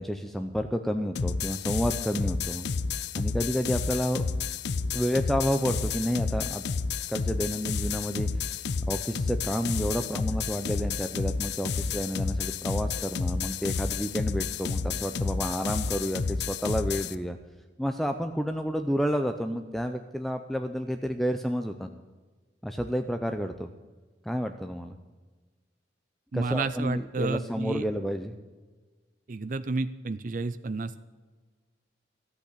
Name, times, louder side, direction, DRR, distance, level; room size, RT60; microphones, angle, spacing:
voice 1, 0.0-2.7 3.2-4.3 4.9-6.6 7.1-17.4 17.8-21.9 22.6-23.7 24.2-25.0 26.3-28.3, equal, ahead, 6 dB, 0.5 m, -30 dB
sound 1, 1.2-17.2, left 5 dB, 70° left, 0.5 m, -31 dB
voice 2, 26.3-27.8 29.3-31.1, right 3 dB, 45° right, 13 dB, 0.5 m, -31 dB
13.5 x 8.2 x 8.4 m, 1.3 s
head